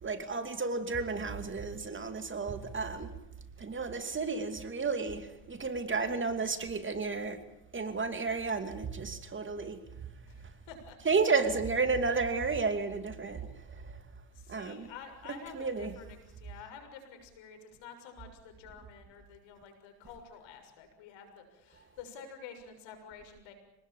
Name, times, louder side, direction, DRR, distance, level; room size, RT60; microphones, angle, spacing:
voice 1, 0.0-3.1 3.6-7.4 7.7-9.8 11.0-14.0 14.5-14.9 15.3-15.9, right 4 dB, 25° right, 2.7 m, -32 dB
voice 2, 10.3-11.0 14.3-23.5, left 6 dB, 75° left, 6.9 m, -49 dB
27.0 x 19.5 x 8.8 m
cardioid pair, 105°, 45 cm